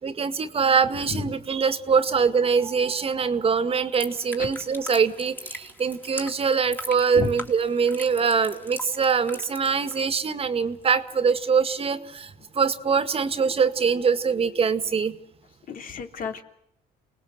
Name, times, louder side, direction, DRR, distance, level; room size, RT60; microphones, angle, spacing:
voice 1, 0.0-15.2, right 5 dB, 35° right, 10 dB, 1.9 m, -23 dB
sound 1, 3.9-10.3 10.6-10.9, left 1 dB, 10° left, 3.3 m, -41 dB
voice 2, 15.7-16.4, left 5 dB, 55° left, 6 dB, 3.2 m, -31 dB
29.0 x 20.0 x 8.0 m, 0.74 s
cardioid pair, 110°, 17 cm